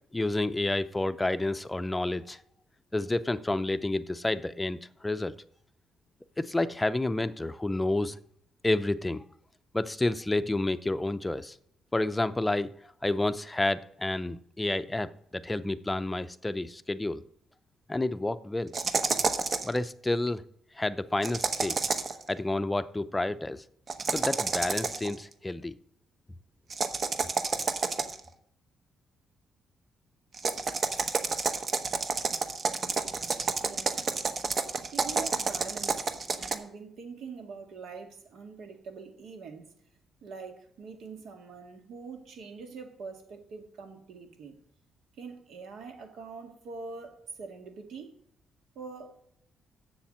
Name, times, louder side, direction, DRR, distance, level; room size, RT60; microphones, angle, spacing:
voice 1, 0.1-2.4 2.9-5.3 6.4-8.2 8.6-9.2 9.7-11.6 11.9-12.7 13.0-17.2 17.9-18.7 19.6-20.4 20.8-21.8 22.3-23.6 24.1-25.7, left 2 dB, 15° left, 11 dB, 0.6 m, -29 dB
sound 1, 18.7-19.8 21.2-22.2 23.9-25.1 26.7-28.3 30.3-36.6, right 4 dB, 45° right, 1.0 m, -29 dB
voice 2, 33.6-34.1 34.9-36.1 36.3-39.7 40.2-44.6 45.2-48.1 48.8-49.2, right 5 dB, 75° right, 5 dB, 1.9 m, -44 dB
7.2 x 7.2 x 7.4 m, 0.70 s
cardioid pair, 90°, 0 cm